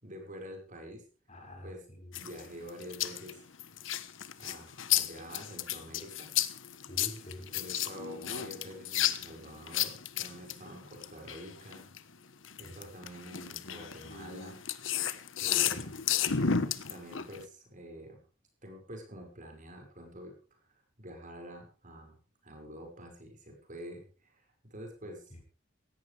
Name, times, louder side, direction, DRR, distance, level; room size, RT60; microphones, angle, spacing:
voice 1, 0.0-1.0 1.3-1.8 2.2-3.4 4.4-6.3 7.2-11.9 12.6-14.6 15.4-16.0 16.9-18.2 18.6-20.6 21.0-22.2 22.4-25.3, equal, 40° right, 3 dB, 6.1 m, -47 dB
voice 2, 1.3-2.1 6.9-7.6 12.6-12.7 25.3-25.4, left 1 dB, 35° left, 2 dB, 6.2 m, -46 dB
sound 1, 2.1-12.0 12.4-17.5, left 9 dB, 80° left, 1.3 m, -33 dB
17.0 x 17.0 x 3.5 m, 0.39 s
head